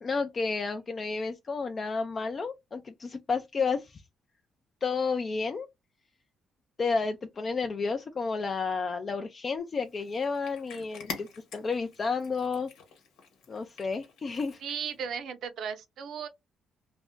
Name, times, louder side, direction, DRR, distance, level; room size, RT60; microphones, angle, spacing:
voice 1, 0.0-4.0 4.8-5.7 6.8-11.3 11.5-12.7 13.5-14.6, left 4 dB, 40° left, 0.3 m, -31 dB
Cat, 9.8-15.0, left 5 dB, 90° left, 1.1 m, -46 dB
voice 2, 14.6-16.3, right 7 dB, 70° right, 0.6 m, -36 dB
2.5 x 2.1 x 3.6 m
cardioid pair, 90°, 0 cm